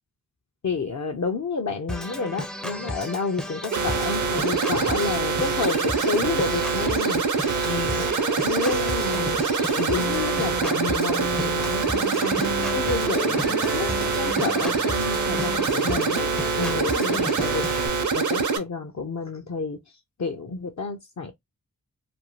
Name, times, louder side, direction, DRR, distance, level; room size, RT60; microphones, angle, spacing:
voice 1, 0.6-7.2 7.6-8.0 8.4-9.4 9.8-16.3 16.6-17.7 18.1-19.8 20.2-21.3, left 4 dB, 55° left, 0.5 m, -30 dB
Organ, 1.9-17.9, left 1 dB, ahead, 0.4 m, -33 dB
sound 1, 3.7-18.6, right 4 dB, 60° right, 0.6 m, -25 dB
2.6 x 2.3 x 2.9 m
wide cardioid pair, 65°, 34 cm